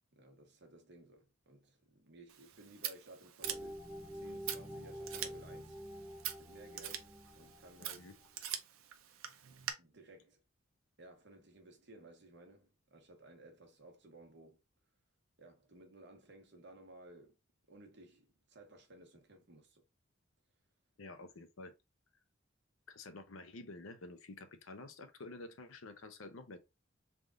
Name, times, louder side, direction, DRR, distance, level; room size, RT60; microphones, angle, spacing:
voice 1, 0.1-3.8 4.1-5.8 6.4-8.1 9.8-10.4 11.0-14.6 15.4-17.4 17.7-19.8, right 1 dB, 55° right, 1.2 m, -57 dB
Scissors, 2.3-9.7, right 10 dB, 85° right, 0.6 m, -45 dB
sound 1, 3.4-8.5, equal, 5° left, 0.4 m, -48 dB
voice 2, 21.0-21.7 22.9-26.6, left 2 dB, 80° left, 0.7 m, -50 dB
3.5 x 2.5 x 3.7 m
head